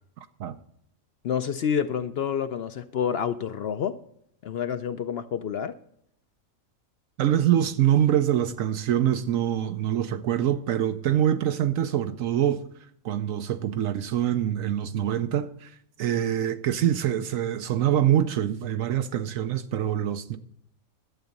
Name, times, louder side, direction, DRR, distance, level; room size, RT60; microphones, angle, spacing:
voice 1, 1.2-4.0 4.4-5.8, left 8 dB, 60° left, 0.7 m, -28 dB
voice 2, 7.2-12.6 13.0-15.7 16.0-20.4, right 10 dB, 80° right, 1.1 m, -25 dB
11.5 x 8.0 x 5.2 m
omnidirectional pair, 1.4 m